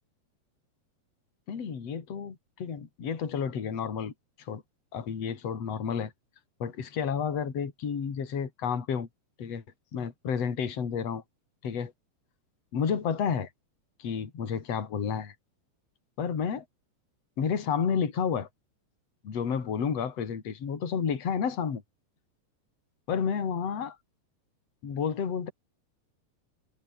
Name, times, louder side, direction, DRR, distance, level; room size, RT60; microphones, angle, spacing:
voice 1, 1.5-4.1 4.4-4.6 4.9-6.1 6.6-9.1 9.4-9.6 9.9-11.2 11.6-11.9 12.7-13.5 14.0-15.3 16.2-16.6 17.4-18.5 19.2-21.8 23.1-24.0 24.8-25.5, left 7 dB, 40° left, 3.9 m, -31 dB
omnidirectional pair, 5.1 m